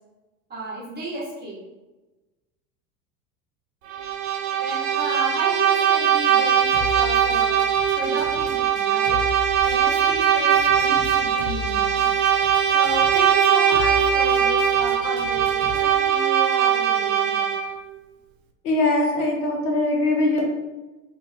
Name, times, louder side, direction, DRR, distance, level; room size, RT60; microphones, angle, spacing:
voice 1, 0.5-1.6 4.6-7.5 8.0-9.2 9.6-12.1 12.7-17.5, right 2 dB, 20° right, -5 dB, 1.2 m, -33 dB
Bowed string instrument, 3.9-17.8, right 8 dB, 55° right, 0.5 m, -21 dB
sound 1, 6.7-15.9, left 8 dB, 35° left, 0.7 m, -37 dB
voice 2, 18.6-20.4, left 2 dB, 60° left, 0 dB, 0.9 m, -21 dB
2.6 x 2.4 x 3.3 m, 1.1 s
figure-of-eight pair, 80°, 48 cm